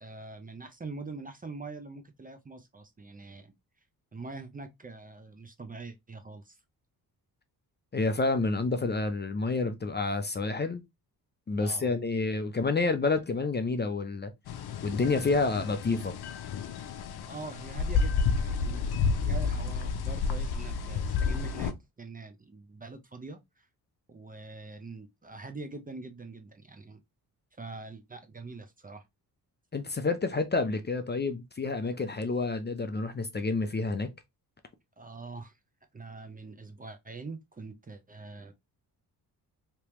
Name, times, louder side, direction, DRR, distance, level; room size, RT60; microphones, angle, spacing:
voice 1, 0.0-3.5 4.1-6.6 11.6-11.9 17.3-23.7 24.1-27.0 27.6-29.1 35.0-35.6 35.9-38.5, right 3 dB, 20° right, 0.6 m, -44 dB
voice 2, 7.9-10.8 11.5-14.3 14.8-16.1 29.7-34.1, left 3 dB, 25° left, 0.6 m, -29 dB
sound 1, 14.5-21.7, left 5 dB, 70° left, 0.7 m, -30 dB
3.4 x 2.9 x 3.0 m
cardioid pair, 85°, 40 cm